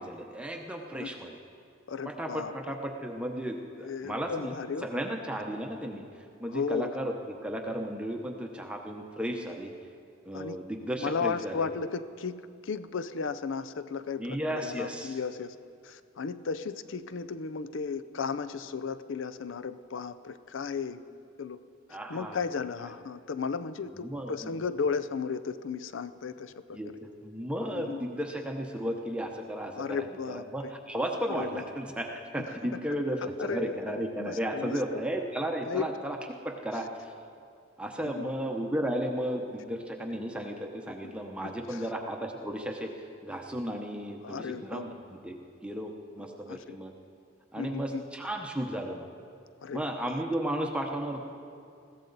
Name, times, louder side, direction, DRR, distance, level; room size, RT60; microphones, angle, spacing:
voice 1, 0.0-1.4 2.0-4.5 4.8-7.1 7.4-9.7 10.2-11.7 14.2-15.2 21.9-22.4 24.0-24.6 26.7-36.2 36.4-37.1 37.8-46.9 47.5-49.1 49.7-51.2, equal, 5° right, 2 dB, 0.8 m, -34 dB
voice 2, 1.9-2.5 3.8-4.9 6.5-6.9 10.3-10.6 11.0-15.6 15.8-21.0 21.4-21.6 21.9-26.8 27.7-28.0 29.7-30.7 31.3-31.6 32.4-32.5 33.4-35.0 35.6-35.9 38.0-38.3 41.4-41.9 44.2-44.9 46.5-46.8 47.6-48.0 49.6-50.2, left 5 dB, 70° left, 13 dB, 0.5 m, -35 dB
21.0 x 15.5 x 4.0 m, 2.4 s
head